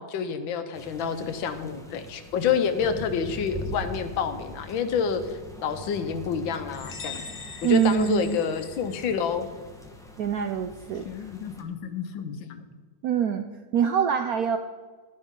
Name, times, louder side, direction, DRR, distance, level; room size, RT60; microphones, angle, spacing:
voice 1, 0.0-5.2 5.6-7.2 7.6-9.5 11.0-12.6, left 6 dB, 85° left, 9 dB, 1.6 m, -28 dB
sound 1, 0.7-11.6, left 1 dB, 5° left, 0.6 m, -42 dB
sound 2, 6.7-9.3, left 5 dB, 55° left, 0.6 m, -42 dB
voice 2, 7.6-8.4 10.2-11.0 13.0-13.4 13.7-14.6, right 8 dB, 75° right, 6 dB, 0.8 m, -24 dB
11.0 x 10.5 x 3.7 m, 1.5 s
omnidirectional pair, 2.1 m